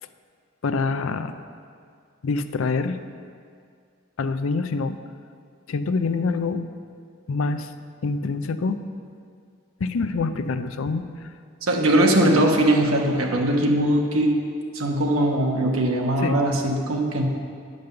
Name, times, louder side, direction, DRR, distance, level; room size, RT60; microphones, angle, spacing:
voice 1, 0.6-1.3 2.2-3.0 4.2-5.0 5.7-6.7 7.3-7.7 8.0-8.8 9.8-11.0 16.2-16.4, left 4 dB, 75° left, 10 dB, 0.5 m, -25 dB
voice 2, 11.6-14.4 14.7-17.2, right 1 dB, 90° right, 1 dB, 1.2 m, -20 dB
9.5 x 5.3 x 6.7 m, 2.2 s
head